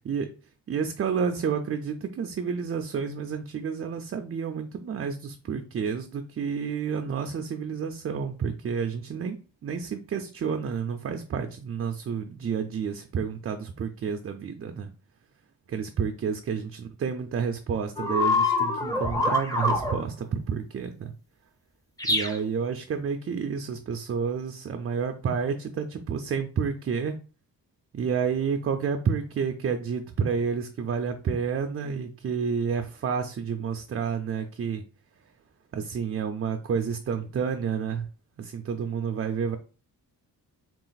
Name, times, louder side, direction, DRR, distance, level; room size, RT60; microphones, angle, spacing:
voice 1, 0.7-14.9 15.7-21.1 22.1-27.2 27.9-34.8 35.7-38.1 38.4-39.6, right 6 dB, 35° right, 6 dB, 0.4 m, -30 dB
sound 1, 18.0-20.0 22.0-22.4, left 2 dB, 10° left, 0.7 m, -25 dB
4.0 x 2.4 x 3.9 m, 0.36 s
cardioid pair, 115°, 37 cm